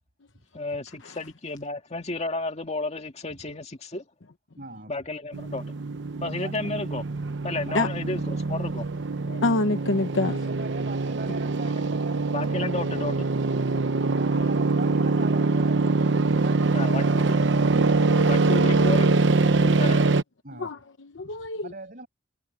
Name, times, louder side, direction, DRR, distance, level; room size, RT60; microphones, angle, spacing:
voice 1, 0.5-4.0 4.9-5.7 6.2-7.0 7.4-8.9 12.3-13.3 16.7-17.3 18.3-19.1 19.8-20.0, left 2 dB, 35° left, 2.2 m, -32 dB
voice 2, 4.6-4.9 6.4-6.5 7.7-8.0 10.2-12.3 14.2-15.9 16.4-17.2 18.1-18.8 20.4-20.7 21.2-21.3 21.6-22.1, right 3 dB, 50° right, 7.7 m, -41 dB
sound 1, 5.3-20.2, right 3 dB, 70° right, 0.8 m, -24 dB
voice 3, 9.3-10.4 14.3-14.4 18.2-18.3 19.5-19.8 20.5-21.7, left 3 dB, 85° left, 0.9 m, -27 dB
head